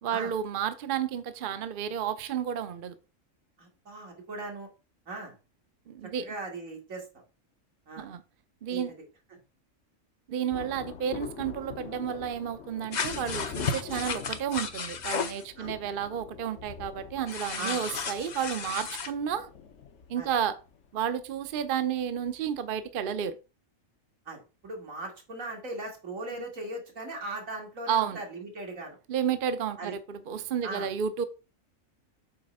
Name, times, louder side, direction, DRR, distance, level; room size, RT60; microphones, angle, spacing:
voice 1, 0.0-3.0 5.9-6.3 8.0-8.2 8.6-8.9 10.3-19.5 20.1-20.6 20.9-23.4 26.3-26.4 27.9-28.2 29.1-31.2, right 8 dB, 50° right, 0.7 m, -31 dB
voice 2, 3.6-4.7 5.1-5.4 6.0-7.1 7.9-8.1 8.7-8.9 15.6-15.7 17.6-17.9 20.2-20.3 24.3-29.0 29.8-29.9 30.6-30.9, right 2 dB, 85° right, 2.4 m, -39 dB
Thunder, 10.5-22.5 22.8-22.9, left 7 dB, 65° left, 1.1 m, -44 dB
sound 1, 12.9-15.4 17.3-19.1, left 5 dB, 45° left, 0.7 m, -33 dB
7.7 x 3.2 x 5.3 m
omnidirectional pair, 1.4 m